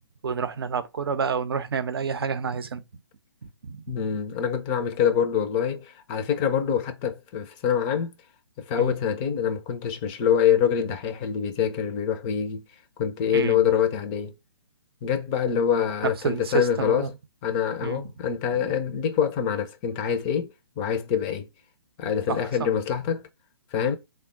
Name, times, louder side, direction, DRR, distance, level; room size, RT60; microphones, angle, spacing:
voice 1, 0.2-2.8 3.6-4.0 8.8-9.0 13.3-13.6 16.2-17.1 17.8-18.0 22.3-22.5, right 6 dB, 65° right, 0.6 m, -29 dB
voice 2, 3.9-8.1 8.6-12.6 13.0-14.3 15.0-17.1 17.4-20.5 20.8-21.5 22.0-23.2 23.7-24.0, left 8 dB, 20° left, 0.5 m, -25 dB
3.5 x 2.2 x 3.5 m
figure-of-eight pair, 135°, 13 cm